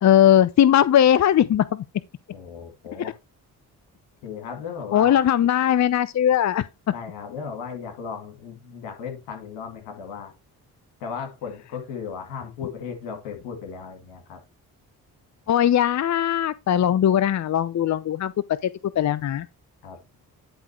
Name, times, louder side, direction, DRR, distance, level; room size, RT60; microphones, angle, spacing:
voice 1, 0.0-1.8 3.0-3.1 4.9-6.6 15.5-18.3 18.6-18.7 19.0-19.5, left 10 dB, 40° left, 0.6 m, -19 dB
voice 2, 2.3-3.1 4.2-5.2 6.9-10.3 11.0-14.4 19.8-20.0, left 6 dB, 85° left, 2.4 m, -36 dB
10.5 x 3.7 x 4.4 m
hypercardioid pair, 45°, 42 cm